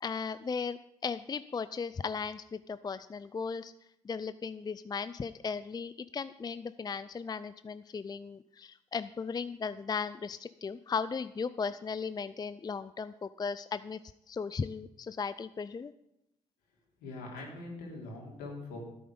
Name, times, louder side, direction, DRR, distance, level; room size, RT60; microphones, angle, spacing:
voice 1, 0.0-3.7 4.0-14.0 14.3-15.9, left 5 dB, 25° left, 14 dB, 0.5 m, -36 dB
voice 2, 17.0-18.8, left 2 dB, 75° left, -2 dB, 3.7 m, -42 dB
14.0 x 8.6 x 5.1 m, 0.84 s
hypercardioid pair, 45°, 16 cm